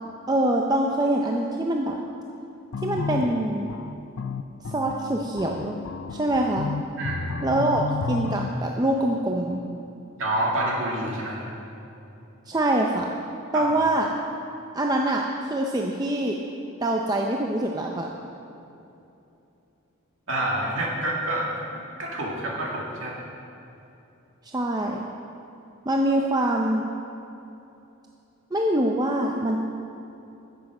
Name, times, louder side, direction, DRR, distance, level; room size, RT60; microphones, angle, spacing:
voice 1, 0.3-1.9 2.8-3.7 4.7-5.7 6.1-6.7 7.4-9.6 12.5-13.1 13.5-14.1 14.7-16.4 16.8-18.1 24.5-25.0 25.9-26.9 28.5-29.6, right 1 dB, 20° right, 0 dB, 0.5 m, -24 dB
sound 1, 2.7-8.5, left 4 dB, 60° left, 0.4 m, -32 dB
voice 2, 7.0-7.4 10.2-11.5 13.5-13.7 20.3-21.5 22.0-23.2, right 1 dB, 65° right, -4 dB, 2.5 m, -27 dB
10.5 x 8.2 x 6.4 m, 2.8 s
head